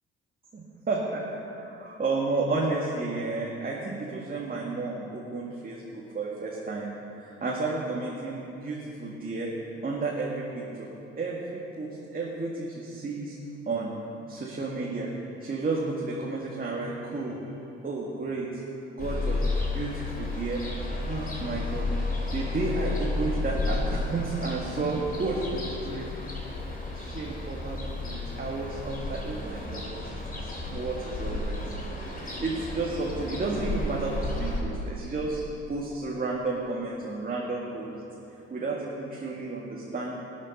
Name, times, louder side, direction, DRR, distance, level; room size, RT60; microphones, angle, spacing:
voice 1, 0.5-9.5 9.8-10.9 11.2-13.4 13.7-13.9 14.3-15.1 15.4-17.4 17.8-18.6 18.9-19.4 19.7-20.6 21.1-21.9 22.3-26.1 26.9-31.6 32.1-35.4 35.7-37.9 38.5-40.2, right 3 dB, 25° right, -4 dB, 2.1 m, -32 dB
Ocean, 19.0-34.6, left 2 dB, 25° left, 3.1 m, -32 dB
19.0 x 8.7 x 5.4 m, 2.9 s
figure-of-eight pair, 50°, 32 cm